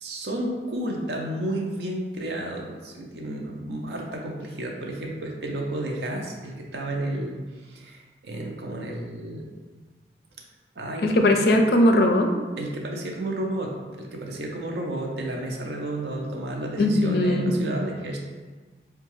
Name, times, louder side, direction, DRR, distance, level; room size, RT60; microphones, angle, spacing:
voice 1, 0.0-9.5 10.8-11.4 12.6-18.2, right 1 dB, 70° right, 0 dB, 0.6 m, -32 dB
voice 2, 11.0-12.3 16.8-17.5, left 1 dB, 65° left, 4 dB, 0.4 m, -19 dB
4.5 x 2.3 x 3.1 m, 1.3 s
head